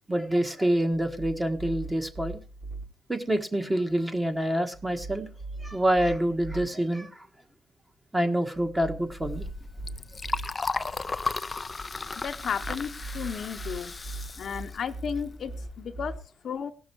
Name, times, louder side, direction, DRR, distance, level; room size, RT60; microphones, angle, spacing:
voice 1, 0.1-2.4 3.1-5.3 5.6-7.3 8.1-9.5, right 1 dB, 10° right, 6 dB, 1.5 m, -27 dB
sound 1, 0.9-2.8 4.7-6.7 8.5-10.5 12.4-16.2, right 2 dB, 50° right, 4.7 m, -40 dB
Liquid, 9.0-15.7, left 3 dB, 25° left, 0.4 m, -35 dB
voice 2, 12.2-13.9 14.4-16.7, left 7 dB, 55° left, 7 dB, 0.8 m, -34 dB
18.0 x 6.3 x 4.5 m, 0.37 s
cardioid pair, 90°, 0 cm